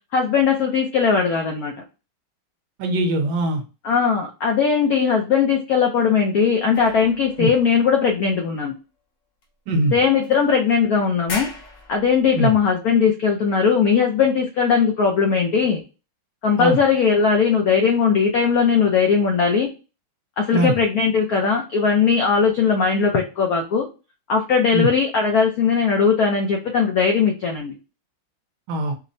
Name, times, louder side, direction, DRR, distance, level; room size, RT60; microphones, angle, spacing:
voice 1, 0.1-1.7 3.8-8.7 9.9-11.5 11.9-15.8 16.4-19.7 20.4-23.9 24.3-27.8, left 6 dB, 85° left, 2 dB, 0.8 m, -19 dB
voice 2, 2.8-3.6 7.4-7.5 9.7-10.0 12.3-12.6 16.6-16.8 20.5-20.8 24.7-24.9 28.7-29.0, right 2 dB, 75° right, 4 dB, 1.6 m, -21 dB
sound 1, 6.7-8.7 9.4-9.5 10.2-10.8 11.2-12.7, left 3 dB, 65° left, 1.5 m, -38 dB
5.2 x 2.0 x 2.6 m, 0.31 s
omnidirectional pair, 2.3 m